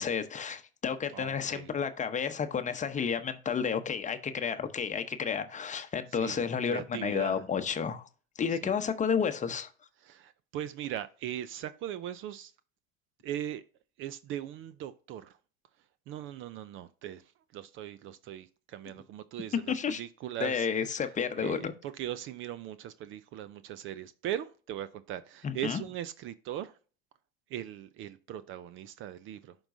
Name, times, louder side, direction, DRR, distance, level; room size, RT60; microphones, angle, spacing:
voice 1, 0.0-8.0 8.4-9.7 19.7-20.0 20.4-21.7 25.4-25.8, left 6 dB, 25° left, 0.8 m, -31 dB
voice 2, 1.1-1.7 6.1-7.4 8.5-8.7 10.0-12.5 13.2-13.6 14.0-15.4 16.1-21.1 21.4-26.8 27.5-29.6, right 11 dB, 40° right, 0.5 m, -40 dB
11.5 x 3.9 x 2.6 m
hypercardioid pair, 85°, 31 cm